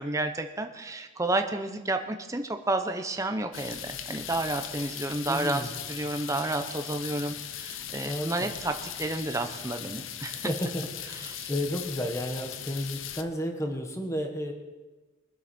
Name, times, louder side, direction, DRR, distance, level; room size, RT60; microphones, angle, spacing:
voice 1, 0.0-10.5 11.1-11.5, right 2 dB, 15° right, 6 dB, 0.8 m, -31 dB
sound 1, 3.5-13.2, left 10 dB, 70° left, 0.7 m, -39 dB
voice 2, 5.3-5.7 8.0-8.5 10.3-14.5, equal, 15° left, 4 dB, 1.3 m, -32 dB
23.0 x 8.0 x 4.3 m, 1.2 s
head